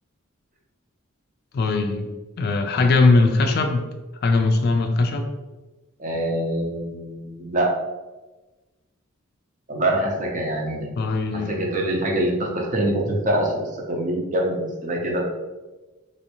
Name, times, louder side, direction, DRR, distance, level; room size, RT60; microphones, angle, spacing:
voice 1, 1.5-2.1 2.4-3.8 4.2-5.2 11.0-11.6, left 3 dB, 50° left, 5 dB, 0.3 m, -20 dB
voice 2, 6.0-7.7 9.7-10.9 11.3-15.2, right 1 dB, 40° right, -1 dB, 0.6 m, -24 dB
3.1 x 2.6 x 2.9 m, 1.2 s
head